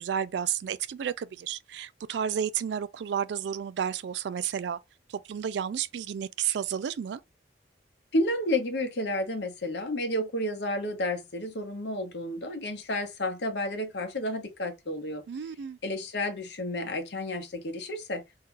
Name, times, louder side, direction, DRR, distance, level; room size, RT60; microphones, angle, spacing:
voice 1, 0.0-4.8 5.1-7.2 15.3-15.8, right 8 dB, 65° right, 0.3 m, -31 dB
voice 2, 8.1-15.2 15.8-18.2, left 1 dB, 65° left, 0.9 m, -31 dB
2.8 x 2.4 x 3.7 m
head